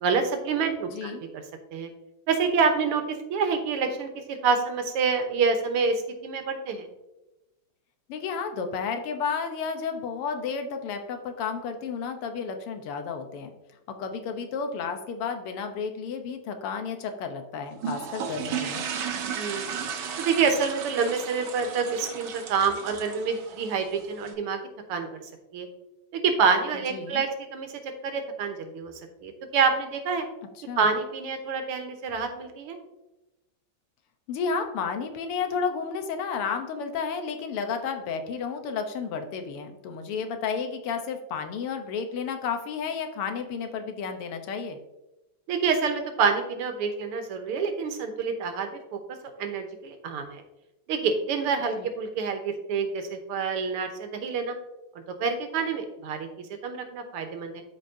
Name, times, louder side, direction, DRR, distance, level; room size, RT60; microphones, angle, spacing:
voice 1, 0.0-1.4 1.7-1.9 2.3-6.9 19.3-19.7 20.2-24.6 24.9-25.2 25.5-25.7 26.1-30.3 30.8-32.8 45.5-49.0 49.4-50.4 50.9-54.5 55.2-57.6, right 5 dB, 90° right, 6 dB, 1.9 m, -27 dB
voice 2, 0.9-1.2 8.1-13.5 14.0-18.9 26.9-27.2 30.7-30.8 34.3-44.8 51.8-51.9, left 6 dB, 85° left, 6 dB, 1.8 m, -32 dB
sound 1, 17.8-24.3, right 7 dB, 65° right, 1.3 m, -35 dB
12.5 x 5.1 x 2.6 m, 0.99 s
omnidirectional pair, 2.4 m